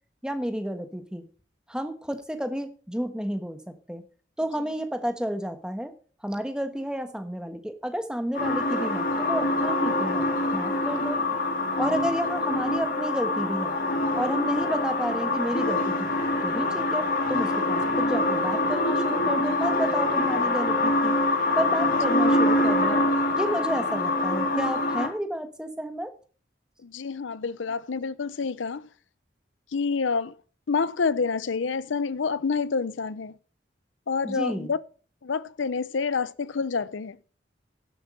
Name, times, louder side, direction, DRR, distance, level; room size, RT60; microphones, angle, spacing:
voice 1, 0.2-1.2 1.7-4.0 4.4-5.9 6.2-11.2 11.8-13.7 14.1-16.1 16.4-21.1 21.6-23.0 23.4-26.1 34.2-34.7, equal, 5° right, 1.2 m, -31 dB
sound 1, 8.3-25.1, left 2 dB, 50° left, 2.9 m, -25 dB
voice 2, 26.8-28.9 29.7-30.4 30.7-33.4 34.1-34.8 35.2-37.2, left 5 dB, 85° left, 0.6 m, -28 dB
11.0 x 8.0 x 5.5 m
head